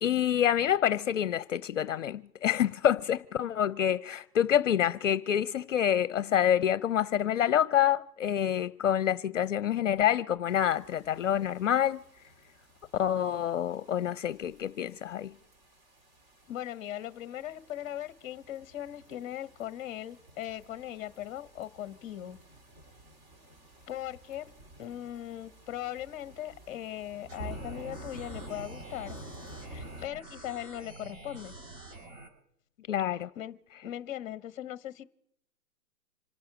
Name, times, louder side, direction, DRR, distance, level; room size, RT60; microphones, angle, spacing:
voice 1, 0.0-12.0 12.9-15.3 32.9-33.3, left 10 dB, 55° left, 0.6 m, -27 dB
sound 1, 10.5-30.1, right 1 dB, 40° right, 3.0 m, -50 dB
voice 2, 16.5-22.4 23.9-24.5 24.8-29.2 29.7-31.5 33.3-35.0, left 12 dB, 20° left, 0.9 m, -39 dB
sound 2, 27.3-32.3, right 2 dB, 60° right, 6.1 m, -48 dB
27.0 x 9.1 x 4.9 m
hypercardioid pair, 145°, 45 cm